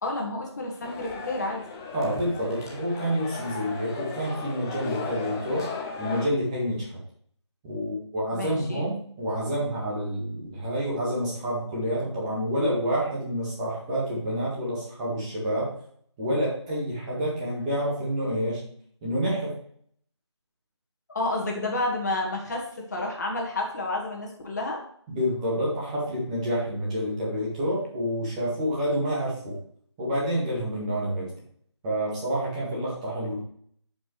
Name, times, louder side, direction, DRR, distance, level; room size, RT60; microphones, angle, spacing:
voice 1, 0.0-1.6 8.3-8.9 21.1-24.8, left 2 dB, 35° left, -1 dB, 1.8 m, -30 dB
sound 1, 0.8-6.2, left 4 dB, 10° left, 0.6 m, -36 dB
voice 2, 1.9-5.7 6.0-6.9 7.6-15.7 16.2-18.6 19.0-19.6 25.1-29.6 30.0-31.3 31.8-33.4, equal, 15° right, -6 dB, 1.7 m, -28 dB
12.0 x 5.2 x 3.3 m, 0.63 s
figure-of-eight pair, 160°, 16 cm